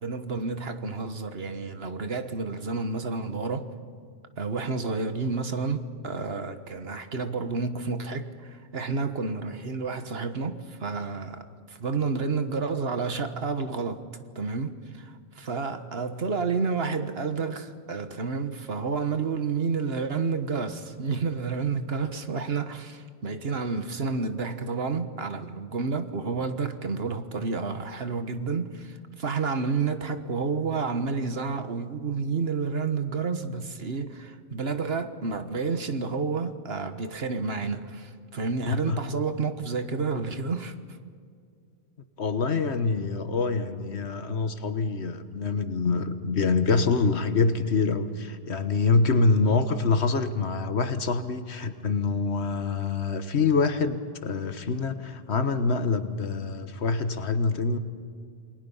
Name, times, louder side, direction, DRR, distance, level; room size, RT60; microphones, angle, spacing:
voice 1, 0.0-3.7 4.4-14.1 14.3-41.0, right 4 dB, 65° right, 1.6 m, -30 dB
voice 2, 38.7-39.0 42.2-57.8, left 4 dB, 85° left, 1.6 m, -25 dB
28.5 x 21.0 x 5.6 m
omnidirectional pair, 1.1 m